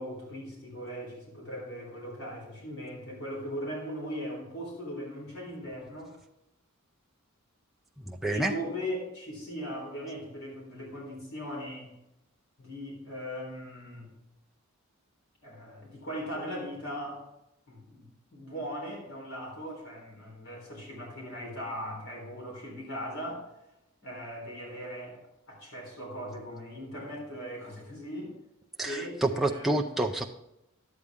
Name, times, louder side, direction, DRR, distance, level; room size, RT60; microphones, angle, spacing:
voice 1, 0.0-6.1 8.3-12.0 12.6-14.1 15.4-17.2 17.7-23.4 24.0-25.2 25.5-28.3 28.8-29.9, equal, 65° left, -1 dB, 3.8 m, -39 dB
voice 2, 8.1-8.5 28.8-30.3, right 2 dB, ahead, 1 dB, 0.4 m, -28 dB
11.0 x 8.3 x 3.5 m, 0.88 s
head